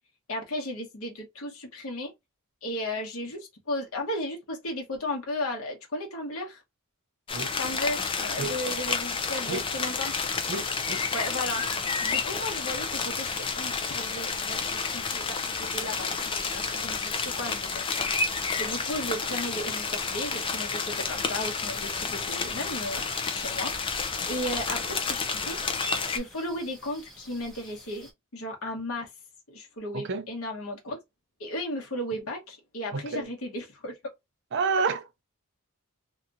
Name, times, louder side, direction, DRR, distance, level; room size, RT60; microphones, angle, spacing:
voice 1, 0.3-2.1 2.6-6.6 7.6-10.1 11.1-11.6 12.0-13.3 13.5-14.6 14.9-18.1 18.6-25.6 26.1-29.1 29.5-31.0 31.4-33.9, left 1 dB, 70° left, 1.1 m, -35 dB
sound 1, 7.3-26.2, left 5 dB, 25° left, 0.4 m, -30 dB
sound 2, 9.2-24.8, left 3 dB, 45° left, 0.9 m, -46 dB
voice 2, 10.5-11.0 29.9-30.3 32.9-33.3 34.5-35.2, right 4 dB, 55° right, 0.5 m, -30 dB
sound 3, 13.6-28.1, equal, ahead, 0.8 m, -51 dB
2.9 x 2.4 x 2.5 m
head